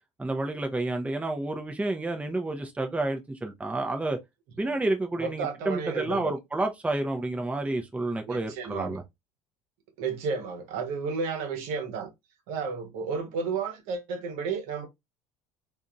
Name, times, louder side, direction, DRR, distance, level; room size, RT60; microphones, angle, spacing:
voice 1, 0.2-4.2 4.6-9.0, right 2 dB, 10° right, 0.6 m, -30 dB
voice 2, 5.2-6.3 8.3-9.0 10.0-12.1 12.5-14.9, right 5 dB, 65° right, 1.0 m, -32 dB
3.7 x 2.6 x 2.2 m
hypercardioid pair, 70°, 14 cm